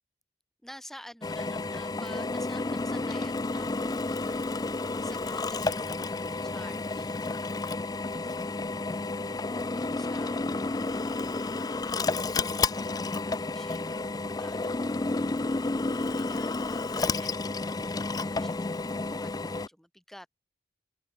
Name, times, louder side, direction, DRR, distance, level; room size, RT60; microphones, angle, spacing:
voice 1, 0.6-20.3, equal, ahead, 2.9 m, -52 dB
Drill, 1.2-19.7, left 3 dB, 20° left, 0.4 m, -31 dB
head